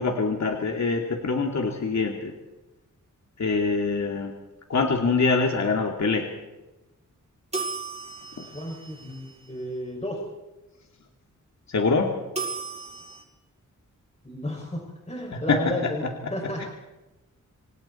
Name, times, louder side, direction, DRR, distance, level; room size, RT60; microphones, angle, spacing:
voice 1, 0.0-2.3 3.4-4.3 4.7-6.3 8.4-8.5 11.7-12.1 15.3-15.6 16.6-16.7, left 4 dB, 60° left, 2 dB, 2.6 m, -24 dB
sound 1, 7.5-9.7 12.4-13.2, right 4 dB, 20° right, 6.7 m, -35 dB
voice 2, 8.5-10.2 14.2-14.8 15.1-16.6, left 1 dB, 20° left, -1 dB, 6.5 m, -32 dB
27.0 x 26.0 x 4.5 m, 1.1 s
wide cardioid pair, 100°, 32 cm